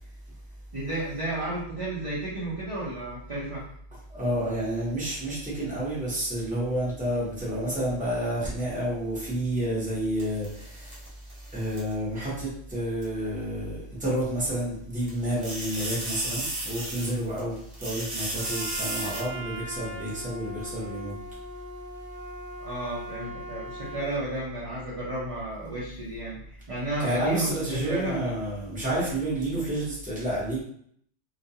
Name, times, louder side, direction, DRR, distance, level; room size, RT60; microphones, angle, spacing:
voice 1, 0.7-3.6 22.6-28.3, right 2 dB, 40° right, -8 dB, 0.5 m, -32 dB
voice 2, 4.1-11.0 11.5-21.2 27.0-30.6, right 1 dB, 10° right, -8 dB, 0.7 m, -30 dB
sound 1, 10.2-11.9 13.0-13.1 15.0-17.4 17.7-19.2, right 1 dB, 85° right, 1.2 m, -34 dB
Trumpet, 18.3-24.1, equal, 80° left, 1.1 m, -40 dB
2.3 x 2.2 x 2.7 m, 0.66 s
omnidirectional pair, 1.3 m